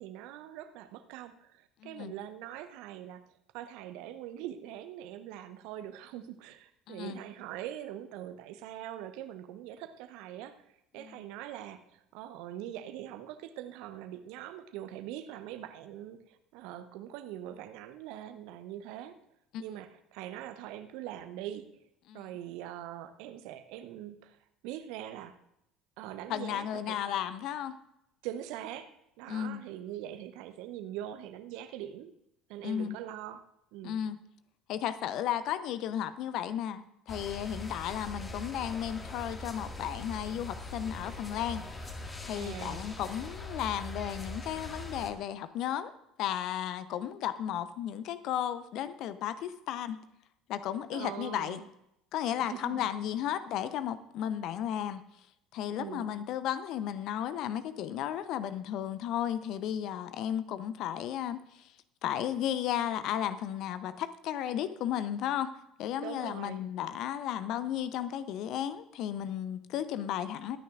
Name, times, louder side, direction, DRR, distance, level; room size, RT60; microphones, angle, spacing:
voice 1, 0.0-19.2 19.6-21.9 22.1-25.4 26.0-27.0 28.2-32.1 32.5-33.4 33.7-34.0 42.4-42.9 50.9-51.7 52.4-52.9 55.7-56.1 66.0-66.6, right 12 dB, 60° right, 10 dB, 0.9 m, -43 dB
voice 2, 1.8-2.1 6.9-7.2 19.5-19.6 22.1-22.2 26.3-27.8 29.3-29.6 32.6-33.0 33.8-34.2 34.7-41.7 42.2-45.9 46.2-50.0 50.5-51.6 52.1-55.0 55.5-61.7 62.0-70.6, left 10 dB, 55° left, 14 dB, 0.7 m, -34 dB
sound 1, 37.1-45.1, left 2 dB, 25° left, 2.0 m, -42 dB
22.5 x 9.5 x 2.5 m, 0.80 s
figure-of-eight pair, 60°, 0 cm